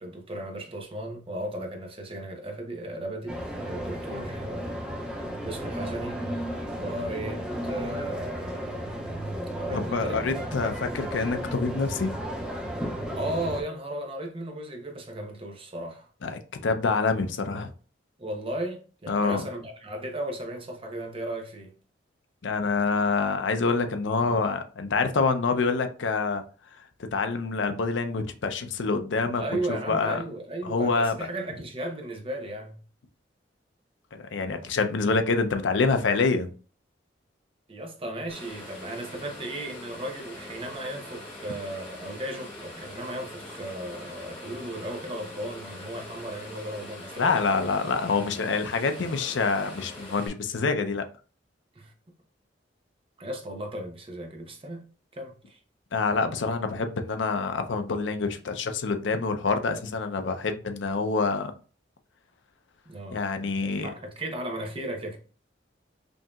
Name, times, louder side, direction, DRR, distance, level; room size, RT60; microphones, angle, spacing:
voice 1, 0.0-4.8 5.4-6.2 6.8-9.0 9.6-10.5 13.1-16.1 18.2-21.7 29.4-32.8 37.7-47.7 51.7-51.9 53.2-54.9 55.1-55.6 62.9-65.2, right 1 dB, 30° right, 0.8 m, -36 dB
sound 1, 3.3-13.6, equal, 5° right, 0.9 m, -34 dB
voice 2, 9.7-12.1 16.2-17.7 19.1-19.4 22.4-26.4 27.1-29.4 29.7-30.2 30.6-31.1 34.1-36.5 47.2-51.0 55.9-61.5 63.1-63.9, left 4 dB, 80° left, 0.5 m, -26 dB
sound 2, 38.3-50.3, left 1 dB, 35° left, 1.4 m, -42 dB
5.1 x 2.8 x 2.3 m
head